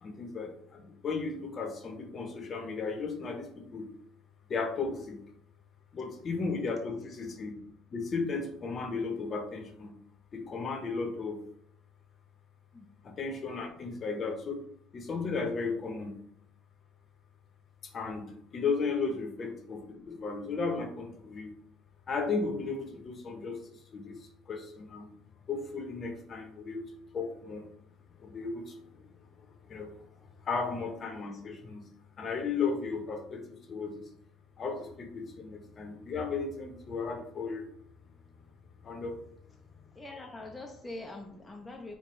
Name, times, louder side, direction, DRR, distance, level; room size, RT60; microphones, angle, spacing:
voice 1, 0.0-3.9 4.5-5.2 5.9-7.6 7.9-9.9 10.3-11.4 13.0-14.6 14.9-16.1 17.9-21.5 22.1-23.6 23.9-25.1 25.5-26.8 27.1-27.6 28.2-29.0 29.7-30.1 30.4-31.8 32.2-34.1 34.6-37.7 38.8-39.2, left 4 dB, 40° left, 4 dB, 0.8 m, -35 dB
voice 2, 39.9-42.0, left 2 dB, 15° left, 1 dB, 0.5 m, -43 dB
4.5 x 2.2 x 3.1 m, 0.69 s
supercardioid pair, 85°, 0 cm